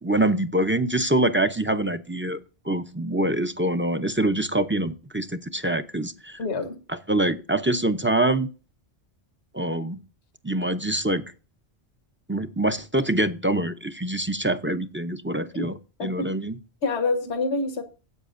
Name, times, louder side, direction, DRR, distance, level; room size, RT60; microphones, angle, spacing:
voice 1, 0.0-2.4 2.6-6.4 6.9-8.5 9.5-10.0 10.4-11.2 12.3-16.6, right 1 dB, 15° right, 0.5 m, -25 dB
voice 2, 6.4-6.8 15.5-15.6 16.0-16.3 16.8-17.8, left 3 dB, 85° left, 1.4 m, -26 dB
13.5 x 8.4 x 2.5 m
omnidirectional pair, 1.1 m